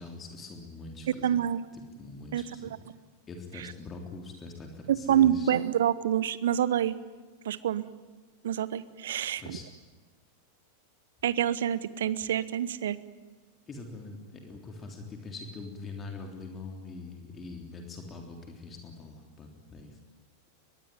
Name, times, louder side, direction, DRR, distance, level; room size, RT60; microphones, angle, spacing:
voice 1, 0.0-1.3 2.0-2.7 3.3-5.5 9.4-9.6 13.7-20.0, left 3 dB, 20° left, 2 dB, 3.7 m, -43 dB
voice 2, 1.2-1.6 2.3-2.7 3.6-3.7 4.9-6.9 7.4-7.8 8.4-9.6 11.2-13.0, right 10 dB, 60° right, 18 dB, 1.0 m, -27 dB
23.0 x 22.0 x 9.5 m, 1.3 s
figure-of-eight pair, 90°, 0 cm